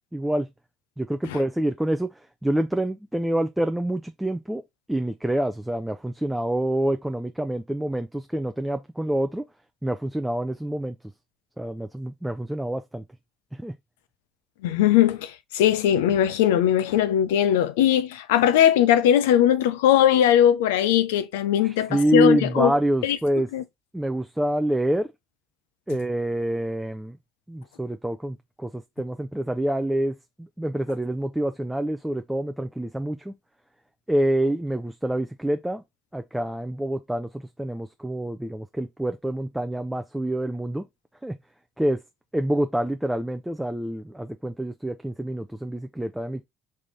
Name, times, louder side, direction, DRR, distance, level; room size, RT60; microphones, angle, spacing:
voice 1, 0.1-0.5 1.0-2.1 2.4-4.6 4.9-9.4 9.8-11.0 11.6-13.0 13.6-13.7 21.6-23.5 23.9-25.1 25.9-27.2 27.5-33.3 34.1-35.8 36.1-40.9 41.2-41.4 41.8-42.0 42.3-46.5, right 1 dB, 5° right, 0.5 m, -27 dB
voice 2, 14.6-22.7 23.0-23.2 23.5-23.6, left 10 dB, 80° left, 0.4 m, -20 dB
3.4 x 3.2 x 3.9 m
hypercardioid pair, 65°, 0 cm